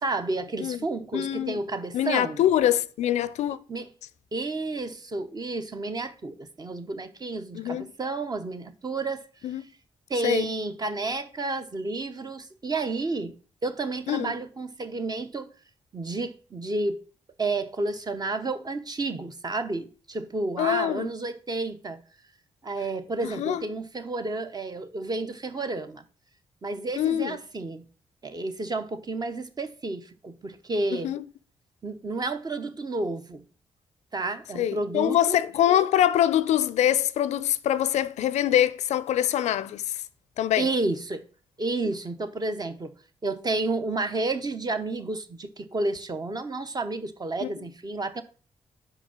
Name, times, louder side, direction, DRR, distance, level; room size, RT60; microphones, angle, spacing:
voice 1, 0.0-2.4 3.7-3.9 4.3-9.2 10.1-13.3 13.6-15.5 15.9-17.0 17.4-22.0 22.6-26.0 26.6-27.8 28.2-31.1 31.8-33.4 34.1-35.4 40.6-41.2 41.6-42.9 43.2-48.2, right 3 dB, 35° right, 0.8 m, -31 dB
voice 2, 1.1-1.6 1.9-3.6 7.5-7.9 9.4-9.6 10.2-10.5 14.1-14.3 20.6-21.1 23.2-23.6 27.0-27.4 30.9-31.2 34.5-40.0 40.4-40.7 47.4-47.5, left 11 dB, 75° left, 0.4 m, -24 dB
5.0 x 4.9 x 5.8 m
supercardioid pair, 50°, 12 cm